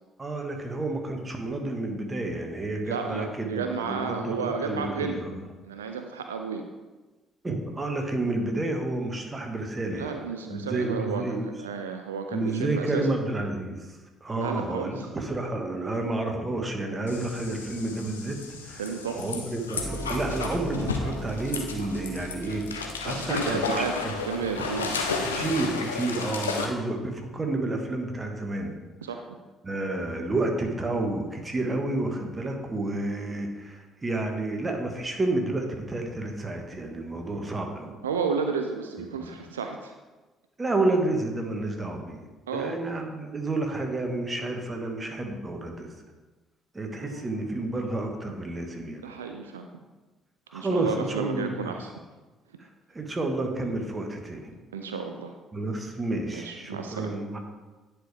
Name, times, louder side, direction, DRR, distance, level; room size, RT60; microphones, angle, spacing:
voice 1, 0.2-5.4 7.4-10.1 10.5-11.4 12.3-18.8 19.1-24.1 24.6-24.9 25.2-28.7 29.6-38.0 39.2-39.3 40.6-42.3 42.5-45.9 46.7-49.1 50.5-51.7 52.6-54.5 55.5-57.4, right 2 dB, 25° right, 3 dB, 1.4 m, -30 dB
voice 2, 2.9-5.2 5.7-6.6 9.9-13.1 14.3-15.0 18.8-19.2 23.1-23.9 24.3-25.0 29.0-29.4 38.0-39.9 42.5-42.8 47.0-47.3 49.0-49.7 50.5-51.9 54.7-55.4 56.3-57.1, right 5 dB, 85° right, 5 dB, 0.3 m, -32 dB
sound 1, 17.1-26.7, left 4 dB, 85° left, 0.6 m, -33 dB
sound 2, 19.8-25.8, equal, 55° right, 1.2 m, -40 dB
9.9 x 5.0 x 3.4 m, 1.2 s
figure-of-eight pair, 50°, 0 cm